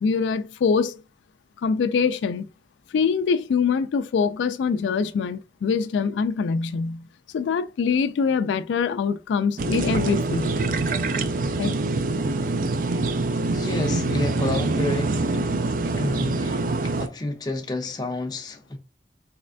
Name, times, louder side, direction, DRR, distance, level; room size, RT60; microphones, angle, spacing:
voice 1, 0.0-1.0 1.6-2.5 2.9-7.1 7.3-10.5 11.6-11.7, left 5 dB, 85° left, 0.3 m, -24 dB
sound 1, 9.6-17.1, right 3 dB, 45° right, 0.3 m, -25 dB
voice 2, 13.5-15.2 16.0-18.8, left 2 dB, 20° left, 0.5 m, -30 dB
4.1 x 3.2 x 2.5 m
head